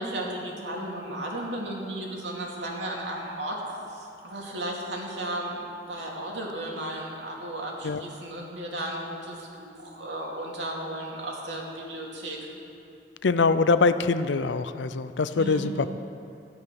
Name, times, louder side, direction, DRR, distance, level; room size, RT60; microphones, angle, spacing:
voice 1, 0.0-3.6 3.9-12.4 15.4-15.7, right 1 dB, 80° right, -2 dB, 2.5 m, -34 dB
voice 2, 13.2-15.9, left 4 dB, 90° left, 13 dB, 0.6 m, -23 dB
13.0 x 10.5 x 6.0 m, 2.8 s
head